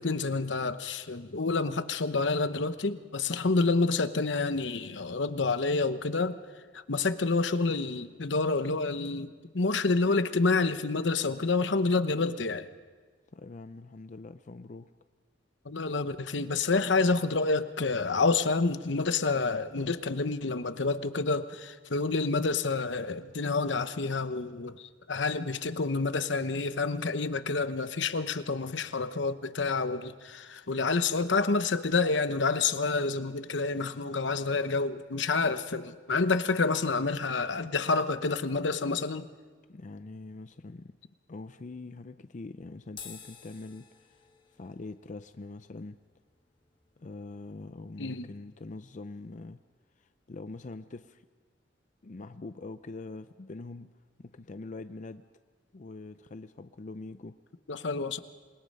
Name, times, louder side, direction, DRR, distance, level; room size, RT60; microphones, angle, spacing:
voice 1, 0.0-6.4 6.7-12.7 15.6-39.3 48.0-48.3 57.7-58.2, left 3 dB, 75° left, 11 dB, 0.9 m, -28 dB
voice 2, 13.3-14.9 39.7-41.0 41.3-44.2 44.5-46.0 47.0-49.6 50.0-51.3 52.0-53.9 54.2-55.2 55.7-57.3, left 3 dB, 45° left, 10 dB, 0.5 m, -43 dB
sound 1, 42.9-49.5, left 6 dB, 25° left, 1.6 m, -54 dB
27.5 x 21.0 x 5.5 m, 1.5 s
head